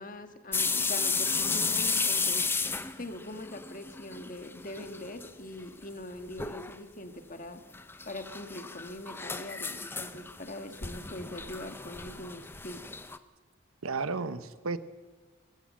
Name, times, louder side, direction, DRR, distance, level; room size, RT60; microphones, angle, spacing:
voice 1, 0.0-2.4 3.0-7.6 8.0-12.8, left 1 dB, 40° left, 7 dB, 1.5 m, -42 dB
sound 1, 0.5-4.3 4.6-5.3 5.6-5.7 6.4-6.8 7.7-13.2, left 4 dB, 10° left, 0.6 m, -33 dB
voice 2, 13.8-14.8, right 4 dB, 85° right, 12 dB, 1.0 m, -33 dB
24.0 x 15.0 x 7.5 m, 1.4 s
head